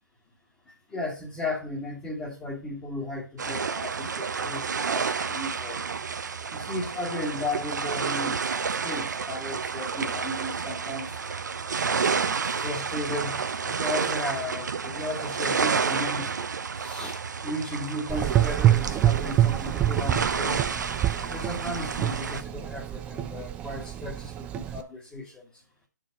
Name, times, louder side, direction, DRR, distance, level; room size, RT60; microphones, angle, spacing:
voice 1, 0.9-5.8 6.5-8.5 8.8-11.2 12.6-20.7 21.3-25.4, left 1 dB, 10° left, 1.7 m, -35 dB
sound 1, 3.4-22.4, right 5 dB, 70° right, 0.9 m, -30 dB
Gurgling / Engine, 18.1-24.8, right 12 dB, 10° right, 0.4 m, -26 dB
8.9 x 4.6 x 5.9 m
hypercardioid pair, 155°, 10 cm